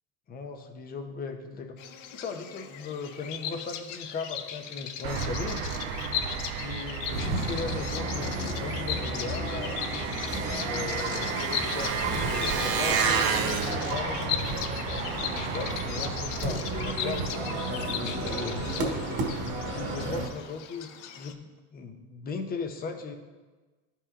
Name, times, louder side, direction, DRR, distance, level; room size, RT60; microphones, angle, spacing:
voice 1, 0.3-5.6 6.6-9.9 10.6-14.4 15.0-19.0 19.6-23.1, left 4 dB, 25° left, 5 dB, 0.7 m, -38 dB
Bird vocalization bird call bird song, 1.8-21.3, left 9 dB, 85° left, 0.7 m, -38 dB
Engine, 5.0-17.2, right 7 dB, 60° right, 0.8 m, -33 dB
sound 1, 7.1-20.3, right 2 dB, 40° right, 1.5 m, -33 dB
12.0 x 5.6 x 2.5 m, 1.3 s
supercardioid pair, 135°, 35 cm